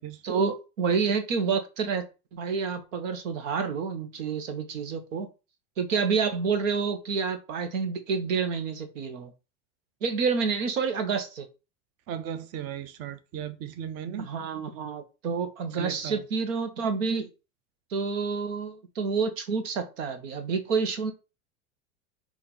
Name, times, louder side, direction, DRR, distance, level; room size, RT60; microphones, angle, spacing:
voice 1, 0.2-5.3 5.8-9.3 10.0-11.5 14.2-17.3 17.9-21.1, right 5 dB, 85° right, 1.2 m, -28 dB
voice 2, 12.1-14.3 15.7-16.2, right 9 dB, 40° right, 0.7 m, -36 dB
4.2 x 2.8 x 4.3 m
supercardioid pair, 120°, 38 cm